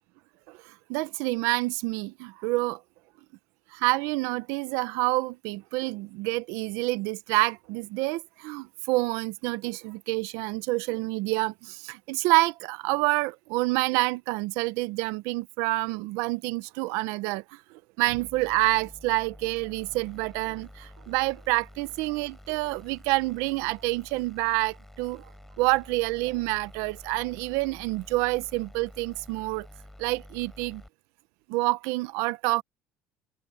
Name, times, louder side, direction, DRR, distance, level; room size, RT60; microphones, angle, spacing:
voice 1, 0.5-2.8 3.7-17.6 18.0-25.2 25.6-29.7 30.0-30.8 31.5-32.6, right 22 dB, 80° right, 0.9 m, -28 dB
sound 1, 18.1-30.9, left 1 dB, 5° left, 4.2 m, -49 dB
cardioid pair, 115°, 5 cm